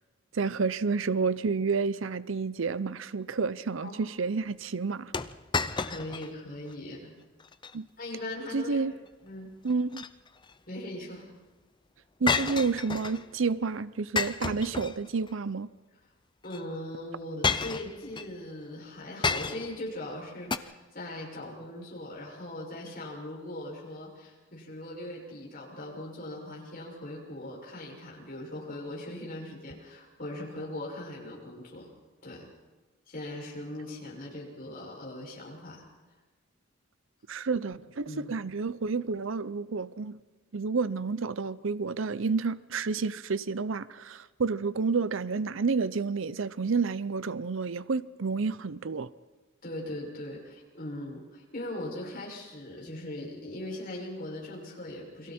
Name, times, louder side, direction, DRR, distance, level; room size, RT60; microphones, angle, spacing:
voice 1, 0.3-5.1 7.7-7.9 8.5-8.9 9.6-10.0 12.2-15.7 37.3-40.2 40.5-49.1, right 4 dB, 70° right, 0.6 m, -30 dB
sound 1, 5.1-6.3 6.7-6.8 7.4-7.8 9.7-10.5 12.3-13.3 14.2-15.3 16.5-16.6 17.4-18.3 19.2-19.8 20.5-20.6, left 4 dB, 20° left, 0.6 m, -31 dB
voice 2, 5.8-7.1 8.0-8.9 9.2-9.5 10.7-11.3 16.4-31.9 32.2-32.5 33.1-35.8 38.0-38.4 49.6-55.3, left 1 dB, 45° left, 6.3 m, -40 dB
29.0 x 22.5 x 4.4 m
head